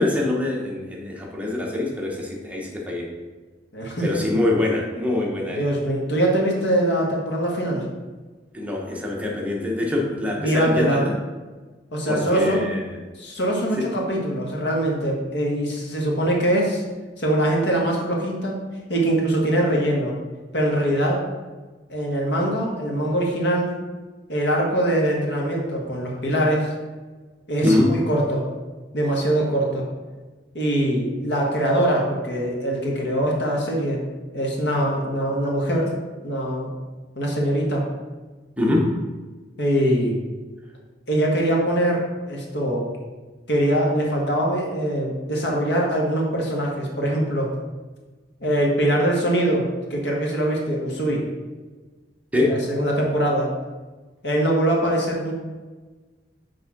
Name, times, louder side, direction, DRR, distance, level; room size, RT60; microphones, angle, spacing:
voice 1, 0.0-3.1 4.0-5.7 8.5-11.1 12.1-13.0 13.8-13.9 27.6-28.1 38.6-39.0 52.3-52.7, left 2 dB, 10° right, -2 dB, 0.9 m, -24 dB
voice 2, 3.7-4.2 5.6-7.8 10.4-11.0 11.9-12.6 13.2-16.8 17.2-18.6 18.9-20.1 20.5-21.3 21.9-23.7 24.3-26.7 27.5-28.5 28.9-29.8 30.5-34.0 34.3-35.9 36.2-36.7 37.1-37.8 39.6-40.2 41.1-42.9 43.5-47.5 48.4-51.2 52.5-53.5 54.2-55.3, right 1 dB, 75° left, -1 dB, 1.5 m, -22 dB
6.2 x 3.6 x 5.8 m, 1.3 s
head